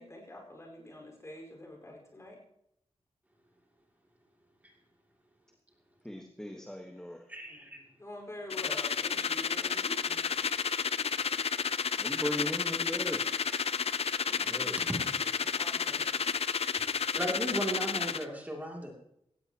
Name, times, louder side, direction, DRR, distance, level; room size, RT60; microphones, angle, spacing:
voice 1, 0.0-2.4 7.5-10.2 14.2-14.7 15.5-16.0, left 1 dB, 25° left, 1 dB, 4.7 m, -46 dB
voice 2, 6.0-7.2 12.0-14.0 14.5-14.7, left 1 dB, 5° left, 3 dB, 1.4 m, -38 dB
voice 3, 7.3-7.8 17.1-18.9, right 1 dB, 15° right, 0 dB, 2.7 m, -36 dB
sound 1, 8.5-18.2, left 6 dB, 70° left, 0.6 m, -31 dB
17.0 x 15.0 x 3.0 m, 0.78 s
wide cardioid pair, 120°, 11 cm